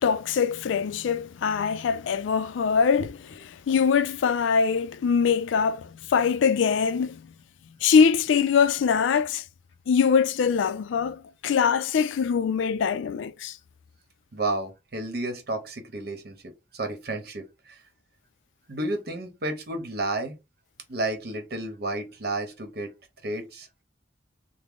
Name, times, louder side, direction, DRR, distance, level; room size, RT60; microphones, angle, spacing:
voice 1, 0.0-7.2 7.8-9.4 9.9-13.6, left 6 dB, 90° left, 0.4 m, -23 dB
voice 2, 14.3-17.8 18.7-20.3 20.9-22.9 23.2-23.7, right 2 dB, 55° right, 0.9 m, -31 dB
3.6 x 2.0 x 3.6 m
head